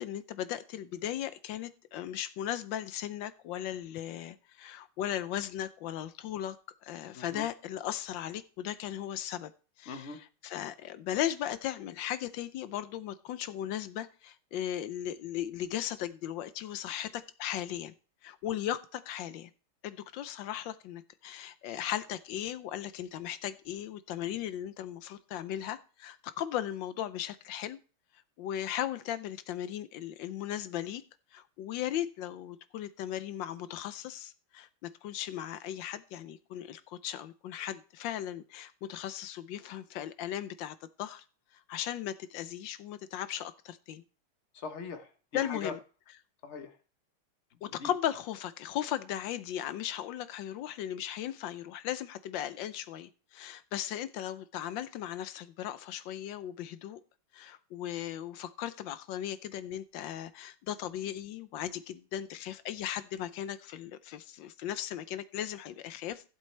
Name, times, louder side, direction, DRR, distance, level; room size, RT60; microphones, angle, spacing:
voice 1, 0.0-6.6 6.8-9.5 9.8-17.9 18.2-19.5 19.8-27.8 28.4-31.0 31.3-41.2 41.5-44.0 45.3-45.8 47.6-57.0 57.3-66.2, left 11 dB, 70° left, 14 dB, 1.2 m, -37 dB
voice 2, 7.1-7.5 9.9-10.2 44.5-45.7 46.4-46.7 47.7-47.9, left 4 dB, 45° left, 8 dB, 1.0 m, -41 dB
15.0 x 7.6 x 3.2 m, 0.37 s
omnidirectional pair, 2.4 m